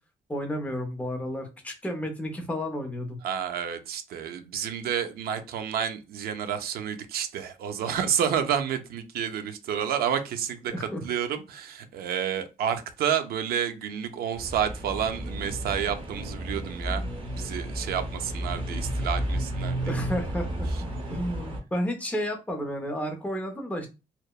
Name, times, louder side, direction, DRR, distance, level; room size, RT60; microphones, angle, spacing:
voice 1, 0.3-3.2 10.7-11.0 19.9-20.7 21.1-23.9, equal, 10° left, 0.6 m, -31 dB
voice 2, 3.2-10.7 11.0-17.0 17.3-20.0, right 8 dB, 80° right, 0.4 m, -30 dB
sound 1, 14.3-21.6, right 1 dB, 35° right, 0.7 m, -32 dB
2.8 x 2.0 x 2.2 m
cardioid pair, 140°, 16 cm